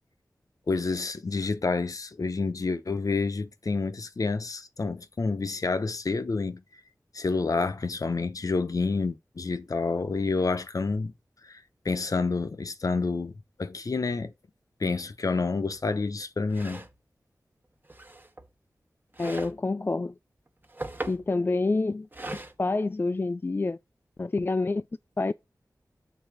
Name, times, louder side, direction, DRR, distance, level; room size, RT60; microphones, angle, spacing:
voice 1, 0.7-6.6 7.1-11.1 11.4-13.3 13.6-14.3 14.8-16.9, left 4 dB, 60° left, 0.8 m, -29 dB
sound 1, 15.7-15.8 16.5-17.0 17.8-18.5 19.1-19.6 20.5-21.3 22.1-22.5, right 2 dB, 30° right, 1.1 m, -39 dB
voice 2, 19.2-20.1 21.1-22.1 22.3-23.8 24.2-24.8 25.2-25.3, left 3 dB, 35° left, 0.3 m, -27 dB
7.0 x 3.7 x 5.8 m
wide cardioid pair, 50°, 7 cm